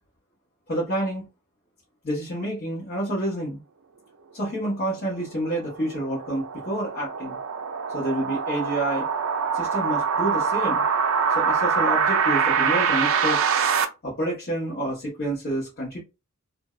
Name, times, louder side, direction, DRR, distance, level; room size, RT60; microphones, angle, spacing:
voice 1, 0.7-1.2 2.0-3.6 4.3-7.4 7.9-9.1 9.5-10.8 11.3-13.4 14.0-16.0, right 1 dB, 45° left, 1.1 m, -28 dB
sound 1, 5.2-13.8, right 6 dB, 65° right, 0.4 m, -24 dB
2.5 x 2.3 x 3.0 m
head